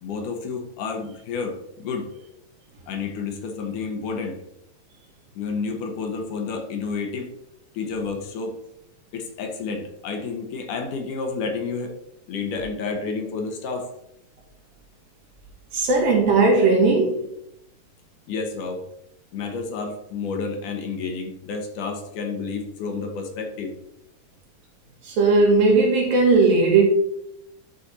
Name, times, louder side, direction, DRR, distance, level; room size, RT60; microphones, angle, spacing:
voice 1, 0.0-2.1 2.9-4.4 5.4-7.3 7.7-8.6 9.1-12.0 12.3-13.9 18.3-18.8 19.3-23.8, left 4 dB, 70° left, 3 dB, 2.5 m, -30 dB
voice 2, 15.7-17.2 25.0-26.8, right 3 dB, 80° right, -1 dB, 3.8 m, -17 dB
12.0 x 4.4 x 4.2 m, 0.79 s
omnidirectional pair, 4.0 m